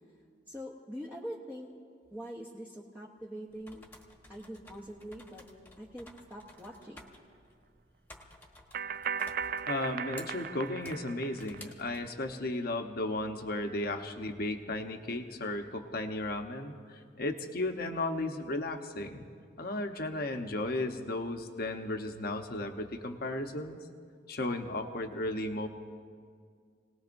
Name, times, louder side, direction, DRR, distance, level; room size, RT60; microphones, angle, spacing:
voice 1, 0.5-1.7 2.1-3.9 4.3-5.4 5.8-7.0, equal, 10° right, -5 dB, 1.1 m, -43 dB
sound 1, 3.5-12.1, left 1 dB, 10° left, 1.4 m, -55 dB
sound 2, 6.7-6.8 8.7-11.6, right 7 dB, 50° right, 0.3 m, -37 dB
voice 2, 9.7-19.3 19.6-23.8 24.3-25.7, left 2 dB, 50° left, 5 dB, 1.0 m, -35 dB
29.0 x 19.0 x 2.6 m, 2.1 s
head